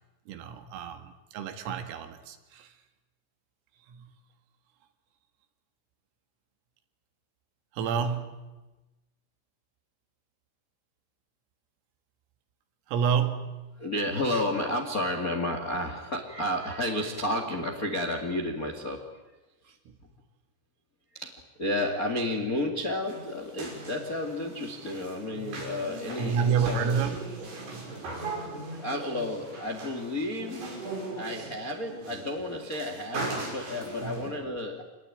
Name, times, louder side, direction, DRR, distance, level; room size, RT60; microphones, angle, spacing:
voice 1, 0.3-2.7 3.9-4.1 7.7-8.6 12.9-13.8 19.9-20.0 26.2-27.5 27.7-28.0 34.0-34.3, right 6 dB, 85° right, 4.4 m, -30 dB
voice 2, 13.8-19.1 19.6-19.8 21.1-27.0 28.5-30.7 31.2-34.8, left 1 dB, 50° left, 1.0 m, -32 dB
sound 1, 23.0-34.3, right 3 dB, 50° right, 7.8 m, -39 dB
27.5 x 20.5 x 9.1 m
omnidirectional pair, 5.9 m